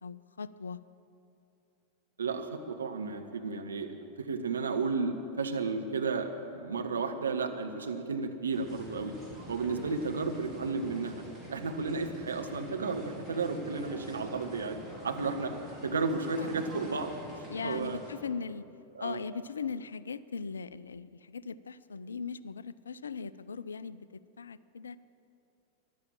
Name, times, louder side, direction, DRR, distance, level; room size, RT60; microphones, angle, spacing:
voice 1, 0.0-0.8 9.9-10.0 16.4-16.5 17.5-18.7 19.0-25.0, left 5 dB, 70° left, 18 dB, 0.4 m, -39 dB
voice 2, 2.2-9.1 9.5-11.2 11.5-14.8 15.0-15.5 15.8-18.0 18.9-19.2, right 4 dB, 70° right, 5 dB, 1.1 m, -33 dB
sound 1, 8.5-18.1, equal, 5° right, 4.2 m, -46 dB
14.5 x 11.0 x 7.4 m, 2.8 s
figure-of-eight pair, 90°, 0 cm